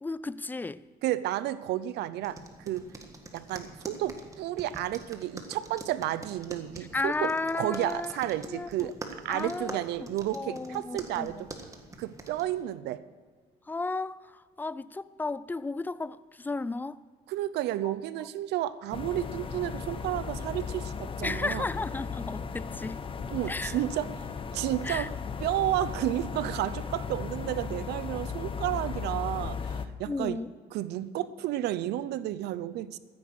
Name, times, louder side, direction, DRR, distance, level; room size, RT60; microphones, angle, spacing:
voice 1, 0.0-0.8 6.9-8.2 8.5-8.9 9.3-11.4 13.7-17.0 21.2-23.0 23.5-23.8 24.8-25.1 30.1-30.5, left 3 dB, 10° left, 0.4 m, -34 dB
voice 2, 1.0-2.9 3.3-7.3 7.6-11.5 12.0-13.0 17.3-21.7 23.3-24.1 24.5-25.1 25.4-30.4 30.7-33.0, right 13 dB, 80° right, 0.7 m, -32 dB
sound 1, 2.2-12.6, right 2 dB, 20° right, 1.7 m, -45 dB
sound 2, 18.9-29.9, left 5 dB, 30° left, 0.9 m, -36 dB
14.0 x 9.8 x 6.4 m
cardioid pair, 110°, 17 cm